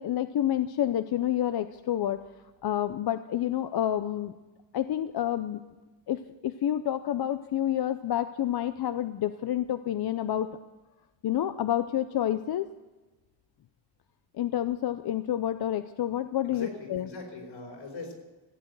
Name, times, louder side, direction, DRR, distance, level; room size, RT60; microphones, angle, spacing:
voice 1, 0.0-2.2 2.6-4.3 4.7-5.6 6.1-10.5 11.2-12.7 14.4-17.1, left 11 dB, 55° left, 11 dB, 0.6 m, -29 dB
voice 2, 16.4-18.1, left 3 dB, 70° left, 1 dB, 4.6 m, -41 dB
16.0 x 8.7 x 7.8 m, 1.2 s
wide cardioid pair, 140°, 47 cm